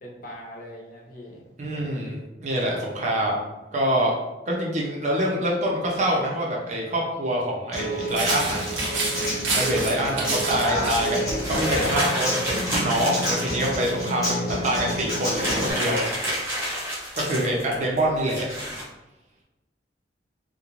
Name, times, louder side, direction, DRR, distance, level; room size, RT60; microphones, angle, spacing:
voice 1, 0.0-2.0 10.1-10.4 17.2-17.8, equal, 45° left, -3 dB, 0.6 m, -40 dB
voice 2, 1.6-3.4 3.7-4.2 4.5-8.6 9.5-16.0 17.2-18.5, right 1 dB, 40° right, -2 dB, 0.5 m, -25 dB
Human voice / Acoustic guitar, 7.7-15.7, equal, 20° left, 0.8 m, -29 dB
sound 1, 8.1-12.1, right 2 dB, 90° right, 0.6 m, -29 dB
sound 2, 11.4-14.1 14.6-14.7 14.9-18.8, equal, 15° right, 0.8 m, -30 dB
2.4 x 2.1 x 3.0 m, 1.0 s
head